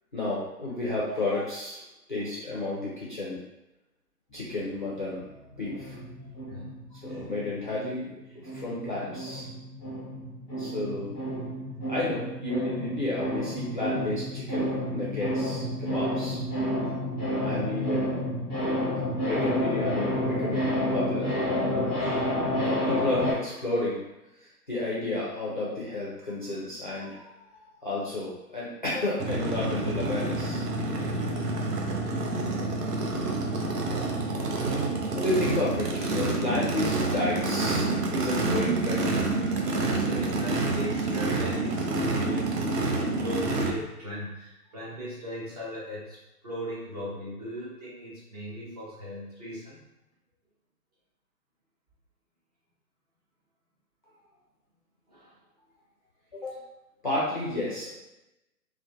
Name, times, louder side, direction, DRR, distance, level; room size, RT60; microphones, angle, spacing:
voice 1, 0.1-1.8 2.1-3.4 4.3-6.2 6.9-8.1 8.3-9.5 10.6-11.2 11.9-16.4 16.8-16.9 17.4-18.1 19.2-21.4 22.0-22.3 22.6-24.0 24.4-27.5 27.8-30.7 35.1-39.5 56.3-56.6 57.0-57.9, left 2 dB, 35° left, -7 dB, 0.4 m, -32 dB
sound 1, 5.6-8.2 8.4-23.3, equal, 5° left, 0.7 m, -30 dB
voice 2, 6.5-6.8 39.6-46.2 46.4-49.8 55.1-55.3, equal, 25° right, -8 dB, 0.5 m, -38 dB
Race car auto racing / Idling / Accelerating revving vroom, 29.2-43.7, right 2 dB, 75° right, 0.6 m, -28 dB
2.4 x 2.1 x 2.8 m, 0.96 s
figure-of-eight pair, 140°, 49 cm